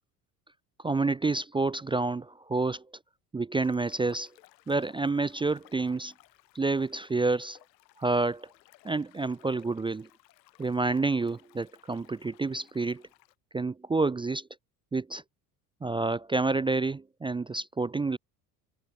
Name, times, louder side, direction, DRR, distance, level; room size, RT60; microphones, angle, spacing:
voice 1, 0.8-2.8 3.3-4.3 4.7-6.1 6.5-7.6 8.0-8.5 8.8-10.1 10.6-13.0 13.5-14.5 14.9-15.2 15.8-18.2, right 3 dB, 10° right, 0.4 m, -28 dB
sound 1, 3.6-13.3, left 17 dB, 80° left, 6.2 m, -60 dB
hypercardioid pair, 70°, 49 cm